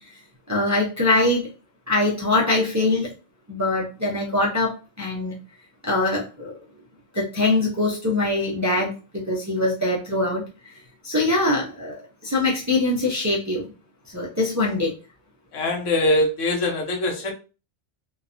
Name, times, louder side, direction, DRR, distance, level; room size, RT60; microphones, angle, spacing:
voice 1, 0.5-1.5 1.9-3.1 3.5-5.4 5.8-6.5 7.1-10.8 11.0-13.7 14.1-14.9, left 2 dB, 25° right, -4 dB, 0.4 m, -23 dB
voice 2, 15.5-17.3, left 1 dB, 85° left, 3 dB, 1.1 m, -22 dB
2.8 x 2.2 x 2.5 m, 0.32 s
omnidirectional pair, 1.2 m